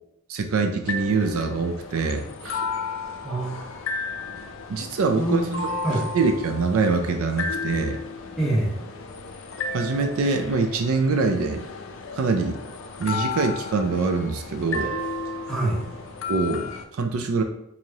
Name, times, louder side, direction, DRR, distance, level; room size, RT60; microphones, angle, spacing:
voice 1, 0.3-2.6 4.7-5.7 6.1-8.0 9.7-11.6 12.2-12.6 13.0-15.0 16.3-17.4, right 4 dB, 70° right, 6 dB, 0.4 m, -24 dB
sound 1, 0.8-16.8, left 3 dB, 60° left, 0.4 m, -33 dB
voice 2, 3.2-3.8 5.2-6.0 8.4-8.7 15.5-15.8, right 1 dB, ahead, -7 dB, 1.0 m, -26 dB
4.6 x 2.7 x 2.8 m, 0.82 s
head